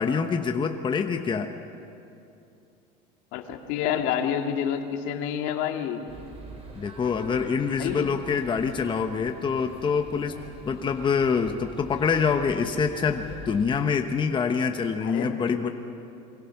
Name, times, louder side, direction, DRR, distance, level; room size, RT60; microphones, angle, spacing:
voice 1, 0.0-1.5 6.7-10.4 10.6-15.7, left 6 dB, 25° left, 5 dB, 1.0 m, -25 dB
voice 2, 3.3-6.1 7.8-8.1 10.3-10.4 15.0-15.4, left 9 dB, 70° left, 4 dB, 2.1 m, -28 dB
sound 1, 6.1-13.8, right 2 dB, 30° right, 4.4 m, -45 dB
28.0 x 23.5 x 5.9 m, 2.7 s
cardioid pair, 130°, 21 cm